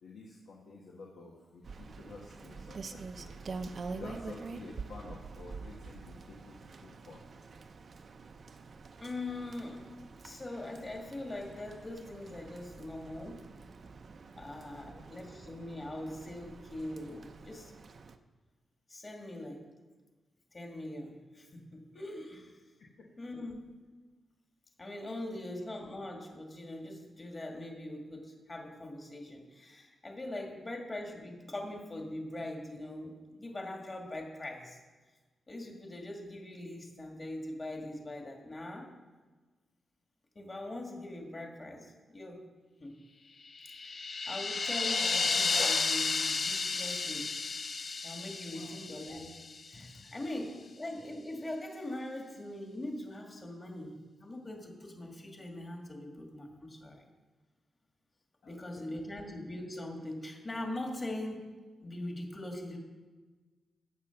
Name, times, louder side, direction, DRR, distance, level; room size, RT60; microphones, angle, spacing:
voice 1, 0.0-3.4 3.9-7.3 14.7-15.1 23.0-23.1 25.3-25.4 48.5-48.8 50.0-50.1 58.4-58.9 59.2-59.3, left 3 dB, 75° left, -3 dB, 1.7 m, -50 dB
Rain, 1.6-18.2, right 4 dB, 45° right, 0.7 m, -47 dB
voice 2, 9.0-9.8 10.2-13.4 14.3-17.7 18.9-19.6 20.5-22.6 23.2-23.6 24.8-34.8 35.5-38.9 40.4-42.4 42.8-42.9 43.8-47.4 48.0-49.3 49.7-57.0 58.4-61.5 61.8-62.8, left 1 dB, 25° left, 2 dB, 2.0 m, -42 dB
sound 1, 43.5-49.8, left 4 dB, 45° left, 0.7 m, -32 dB
16.5 x 7.2 x 5.9 m, 1.3 s
wide cardioid pair, 150°, 0 cm